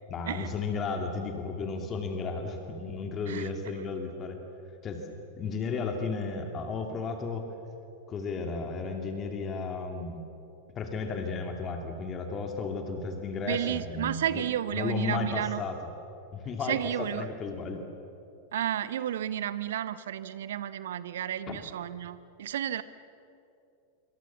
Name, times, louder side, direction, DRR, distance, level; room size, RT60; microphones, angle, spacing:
voice 1, 0.1-4.4 4.8-5.0 5.4-7.4 8.1-10.2 10.7-14.4 14.7-15.8 16.3-17.8 21.5-21.6, left 4 dB, 25° left, 4 dB, 2.7 m, -34 dB
voice 2, 13.4-15.6 16.7-17.3 18.5-22.8, right 11 dB, 60° right, 16 dB, 0.8 m, -32 dB
26.5 x 24.5 x 7.3 m, 2.7 s
figure-of-eight pair, 90°, 0 cm